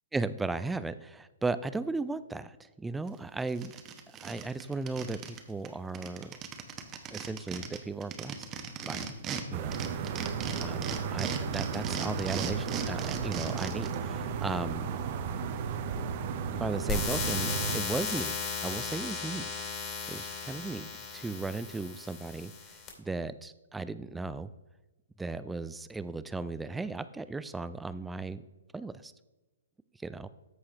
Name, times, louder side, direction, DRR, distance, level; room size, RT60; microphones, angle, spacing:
voice 1, 0.1-3.7 4.2-6.4 7.1-8.4 8.8-9.1 9.5-9.8 10.6-14.9 16.5-18.4 18.6-19.7 20.1-22.5 23.0-24.5 25.2-28.4 28.7-29.1 30.0-30.3, right 3 dB, 5° right, 13 dB, 0.3 m, -36 dB
sound 1, 3.1-3.2 3.5-5.4 5.6-5.7 5.9-9.4 9.7-13.9, right 7 dB, 25° right, 0.9 m, -37 dB
sound 2, 9.5-17.8, right 6 dB, 40° right, 0.7 m, -34 dB
sound 3, 16.9-22.9, left 5 dB, 30° left, 2.5 m, -35 dB
14.0 x 4.7 x 2.9 m, 1.1 s
figure-of-eight pair, 125°, 0 cm